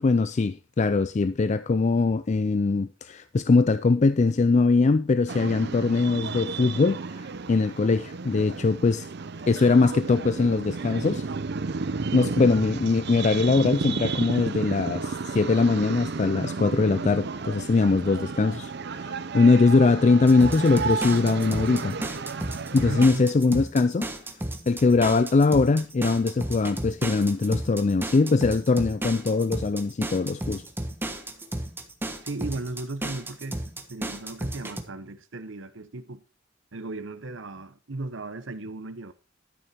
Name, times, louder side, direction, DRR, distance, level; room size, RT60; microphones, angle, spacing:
voice 1, 0.0-9.1 9.5-11.3 12.1-22.0 22.7-24.0 24.7-30.6, left 3 dB, 35° left, 0.4 m, -22 dB
sound 1, 5.3-23.1, right 4 dB, 60° right, 0.6 m, -33 dB
sound 2, 20.3-34.8, right 1 dB, 10° right, 1.3 m, -33 dB
voice 2, 22.8-23.2 23.5-23.6 32.2-33.6 33.9-36.2 36.7-39.1, right 2 dB, 75° right, 1.0 m, -36 dB
12.5 x 6.8 x 4.3 m
head